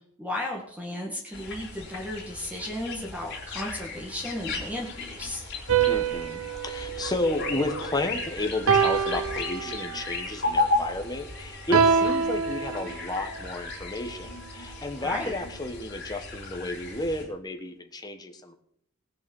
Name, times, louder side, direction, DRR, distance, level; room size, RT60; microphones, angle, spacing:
voice 1, 0.2-5.4 15.0-15.3, left 1 dB, 5° right, -1 dB, 1.9 m, -34 dB
sound 1, 1.3-17.2, left 3 dB, 55° left, 3.4 m, -35 dB
sound 2, 5.7-8.1 8.7-10.2 11.7-13.4, right 6 dB, 65° right, 0.8 m, -26 dB
voice 2, 5.8-18.5, left 2 dB, 20° left, 5 dB, 1.4 m, -32 dB
18.5 x 6.2 x 7.2 m, 0.69 s
head